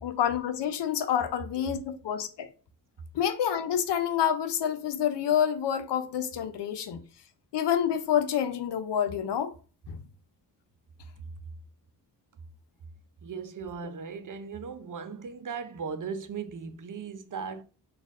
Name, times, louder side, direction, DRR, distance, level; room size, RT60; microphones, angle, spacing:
voice 1, 0.0-2.5 3.1-7.0 7.5-9.5 9.9-10.0, left 9 dB, 90° left, 0.6 m, -28 dB
voice 2, 13.2-17.6, right 5 dB, 50° right, 0.6 m, -37 dB
4.1 x 2.5 x 3.5 m
cardioid pair, 70°, 41 cm